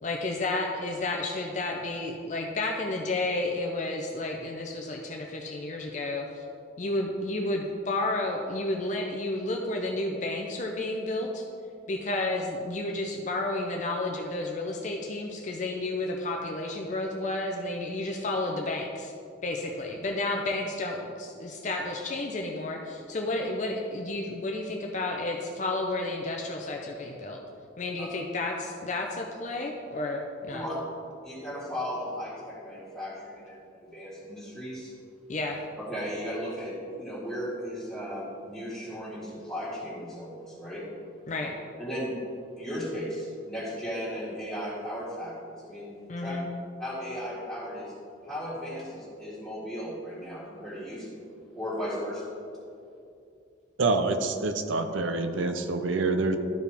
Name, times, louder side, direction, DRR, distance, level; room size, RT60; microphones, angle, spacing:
voice 1, 0.0-6.4 6.8-11.4 11.9-19.1 19.4-27.4 27.8-30.6 35.3-35.6 41.3-41.6 46.1-46.5, left 2 dB, 40° left, 1 dB, 0.6 m, -31 dB
voice 2, 31.2-34.9 35.8-40.8 41.8-42.1 42.6-45.9 46.2-46.3 46.8-47.9 48.2-51.2 51.5-52.3, equal, 5° left, -14 dB, 1.9 m, -36 dB
voice 3, 53.8-56.4, right 3 dB, 85° right, 8 dB, 0.6 m, -26 dB
13.0 x 4.8 x 3.4 m, 2.5 s
head